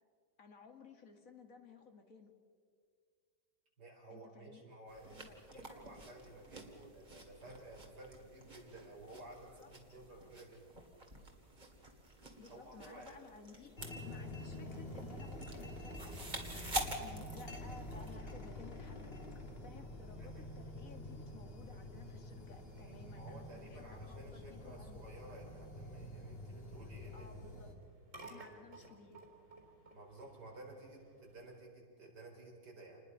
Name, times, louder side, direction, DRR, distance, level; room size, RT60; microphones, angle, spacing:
voice 1, 0.4-2.3 4.1-4.6 5.1-5.9 9.6-9.7 12.4-16.2 16.5-19.1 19.6-25.0 27.1-27.7 28.2-29.2, left 5 dB, 50° left, 5 dB, 2.1 m, -57 dB
voice 2, 3.8-10.8 12.5-13.2 20.2-20.4 22.7-27.4 28.2-28.5 29.9-33.0, right 2 dB, 80° right, -1 dB, 5.2 m, -54 dB
sound 1, 4.9-18.2, right 1 dB, 25° right, 2.5 m, -48 dB
sound 2, 13.8-27.7, left 1 dB, 35° left, 2.4 m, -48 dB
sound 3, 26.1-31.6, right 2 dB, 50° right, 4.1 m, -58 dB
28.5 x 20.5 x 5.6 m, 2.2 s
omnidirectional pair, 1.8 m